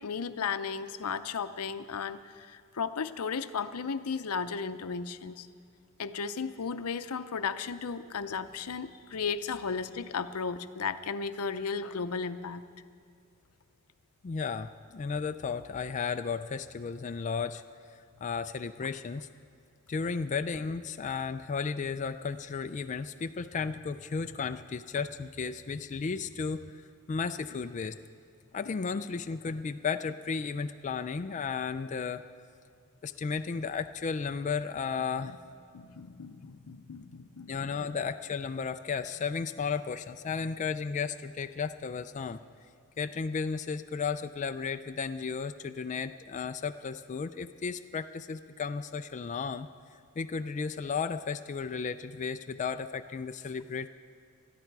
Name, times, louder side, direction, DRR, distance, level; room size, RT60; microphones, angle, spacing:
voice 1, 0.0-5.5 6.0-12.6 35.2-35.4 35.7-38.0, left 5 dB, 80° left, 11 dB, 0.6 m, -35 dB
voice 2, 14.2-17.6 18.2-19.3 19.9-26.6 27.1-28.0 28.5-32.2 33.0-35.4 37.5-42.4 43.0-49.7 50.2-53.9, left 5 dB, 35° left, 8 dB, 0.3 m, -34 dB
20.0 x 13.0 x 4.7 m, 2.3 s
head